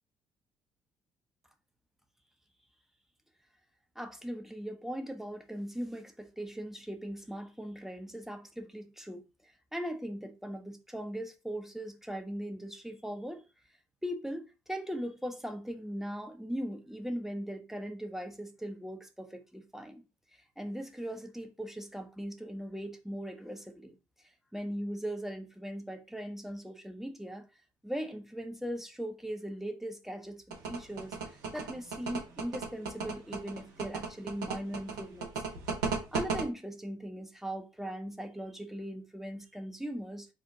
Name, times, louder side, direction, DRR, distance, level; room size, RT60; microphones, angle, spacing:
voice 1, 4.0-13.4 14.0-20.0 20.3-27.5 27.8-30.4 30.7-31.2 31.5-35.3 36.1-40.3, equal, 5° right, 0.6 m, -39 dB
sound 1, 30.5-36.4, right 5 dB, 80° right, 0.7 m, -34 dB
2.8 x 2.1 x 3.6 m
hypercardioid pair, 50°, 11 cm